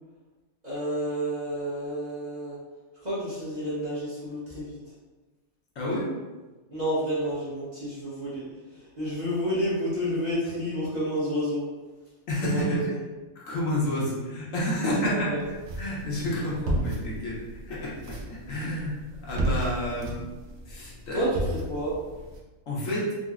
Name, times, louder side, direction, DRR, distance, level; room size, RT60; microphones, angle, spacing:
voice 1, 0.6-2.6 3.0-4.8 6.7-8.4 8.7-11.7 12.4-13.0 14.8-15.4 21.1-21.9, equal, 35° right, -10 dB, 0.9 m, -30 dB
voice 2, 5.8-6.2 12.3-12.9 13.3-15.4 15.8-20.2 20.7-21.3 22.7-23.2, equal, 70° left, -6 dB, 1.2 m, -30 dB
sound 1, 15.4-22.4, right 1 dB, 65° right, 0.7 m, -34 dB
3.9 x 2.1 x 2.4 m, 1.2 s
omnidirectional pair, 1.5 m